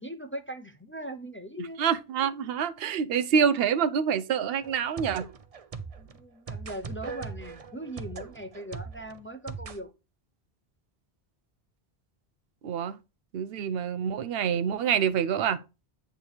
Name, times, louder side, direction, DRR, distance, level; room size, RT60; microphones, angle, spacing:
voice 1, 0.0-1.8 6.0-9.9, right 1 dB, 15° left, 0.6 m, -40 dB
voice 2, 1.8-5.3 12.6-13.0 13.3-15.6, right 7 dB, 75° right, 0.8 m, -26 dB
sound 1, 4.6-9.8, right 5 dB, 40° right, 0.7 m, -40 dB
8.8 x 3.4 x 6.3 m
omnidirectional pair, 1.0 m